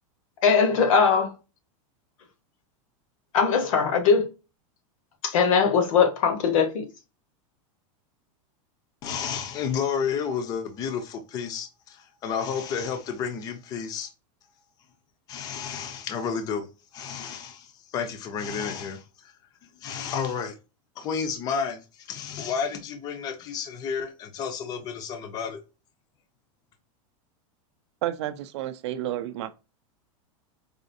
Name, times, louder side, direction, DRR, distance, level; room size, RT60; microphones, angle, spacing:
voice 1, 0.4-1.3 3.3-4.3 5.2-6.9, left 6 dB, 70° left, 1.0 m, -20 dB
voice 2, 9.0-14.1 15.3-16.7 16.9-17.7 17.9-19.0 19.8-20.6 21.0-21.8 22.1-25.6, left 6 dB, 20° left, 0.5 m, -31 dB
voice 3, 28.0-29.5, right 13 dB, 55° right, 0.4 m, -31 dB
4.8 x 2.5 x 2.6 m
supercardioid pair, 170°, 18 cm